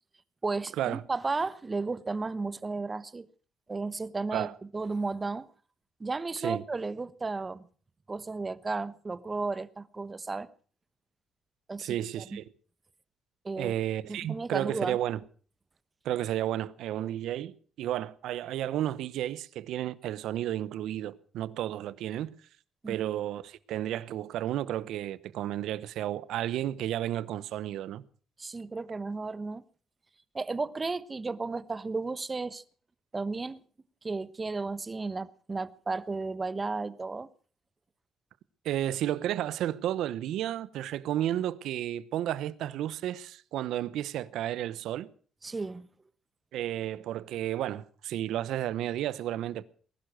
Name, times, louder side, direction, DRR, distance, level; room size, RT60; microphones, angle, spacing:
voice 1, 0.4-3.3 3.7-5.5 6.0-7.7 8.1-10.5 11.7-12.4 13.4-13.7 14.1-15.0 22.8-23.0 28.4-29.6 30.3-32.6 33.1-33.6 34.0-37.3 45.4-45.9, right 3 dB, 25° right, 1.1 m, -34 dB
voice 2, 11.8-12.4 13.6-15.2 16.0-22.3 22.9-28.0 38.6-45.1 46.5-49.6, right 12 dB, 85° right, 0.9 m, -32 dB
20.0 x 11.5 x 6.2 m
cardioid pair, 90°, 0 cm